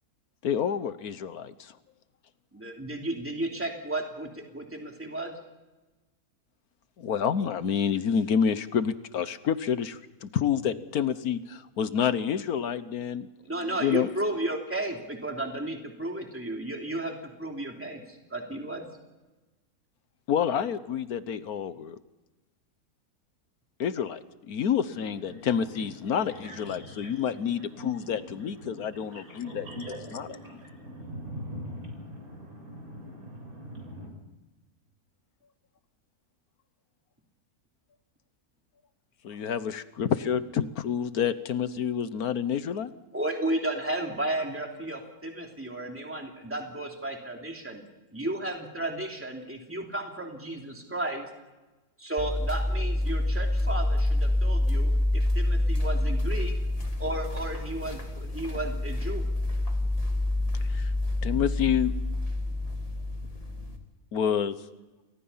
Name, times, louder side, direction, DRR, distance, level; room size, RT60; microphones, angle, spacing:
voice 1, 0.4-1.8 7.0-13.3 13.7-14.1 20.3-22.0 23.8-24.2 24.5-29.7 30.1-30.3 39.2-42.9 60.7-60.9 61.2-61.9 64.1-64.6, left 8 dB, 75° left, 13 dB, 1.5 m, -28 dB
voice 2, 2.5-5.4 13.4-18.9 43.1-47.8 48.1-51.3 52.0-56.6 57.0-59.3, right 1 dB, 10° right, 1 dB, 3.0 m, -33 dB
voice 3, 24.9-34.1, equal, 70° right, 2 dB, 8.1 m, -42 dB
sound 1, 52.2-63.8, left 1 dB, 25° left, 2.8 m, -27 dB
29.5 x 22.5 x 5.7 m, 1.1 s
omnidirectional pair, 1.6 m